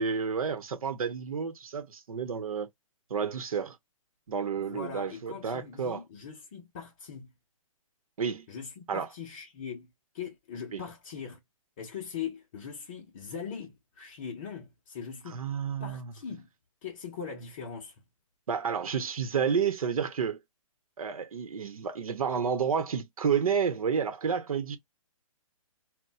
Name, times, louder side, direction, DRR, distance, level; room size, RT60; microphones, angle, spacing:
voice 1, 0.0-2.7 3.1-3.8 4.3-6.0 8.2-8.5 8.9-9.1 10.7-10.8 15.3-16.1 18.5-20.4 21.0-24.8, right 6 dB, 85° right, 0.9 m, -30 dB
voice 2, 4.6-7.3 8.5-11.4 11.8-15.4 15.8-16.5 16.8-17.9, left 7 dB, 20° left, 0.5 m, -41 dB
4.1 x 2.1 x 2.3 m
hypercardioid pair, 170°, 18 cm